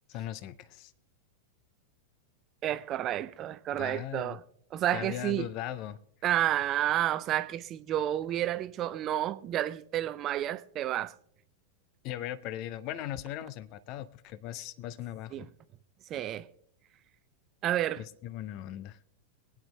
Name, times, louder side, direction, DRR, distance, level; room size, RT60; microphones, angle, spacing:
voice 1, 0.1-0.9 3.7-4.4 4.9-6.0 12.0-15.5 18.0-19.0, left 12 dB, 40° left, 0.5 m, -39 dB
voice 2, 2.6-4.4 4.7-5.5 6.2-11.1 15.3-15.5 16.1-16.5 17.6-18.0, right 12 dB, 30° right, 0.4 m, -30 dB
23.0 x 9.2 x 2.2 m
figure-of-eight pair, 90°, 0 cm